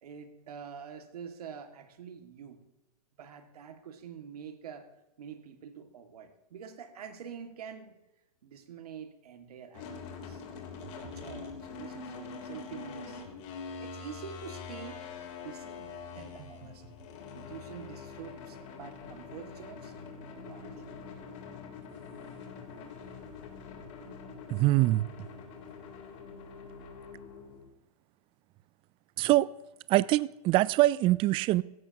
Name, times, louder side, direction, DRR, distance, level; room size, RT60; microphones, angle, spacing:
voice 1, 0.0-2.6 3.2-4.9 5.2-8.0 8.4-10.4 10.9-13.2 13.8-16.8 17.3-19.9 20.4-21.0, right 7 dB, 70° right, 2.1 m, -46 dB
sound 1, 9.7-27.7, left 5 dB, 50° left, 3.4 m, -44 dB
sound 2, 10.8-11.7 16.2-17.0, right 7 dB, 55° right, 1.7 m, -51 dB
voice 2, 24.5-25.1 29.2-29.5 29.9-31.6, right 17 dB, 25° right, 0.4 m, -24 dB
17.0 x 15.5 x 2.9 m
hypercardioid pair, 120°, 20 cm